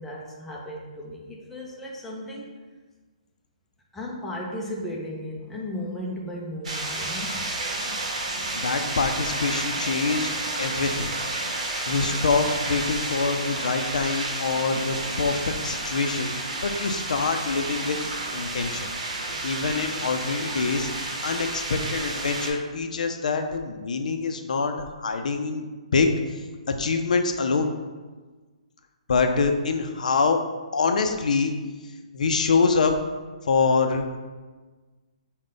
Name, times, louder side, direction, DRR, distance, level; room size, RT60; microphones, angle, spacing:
voice 1, 0.0-2.5 3.9-7.5, left 1 dB, 5° left, -3 dB, 0.4 m, -35 dB
sound 1, 6.6-22.5, right 2 dB, 60° right, 0.9 m, -31 dB
voice 2, 8.6-10.3 10.6-11.1 11.9-16.3 16.6-18.0 18.3-18.9 19.4-20.9 21.2-26.2 26.7-27.7 29.1-30.4 30.7-31.5 32.1-32.9 33.5-34.0, left 4 dB, 70° left, 6 dB, 0.4 m, -25 dB
4.8 x 2.2 x 3.8 m, 1.3 s
hypercardioid pair, 160°, 4 cm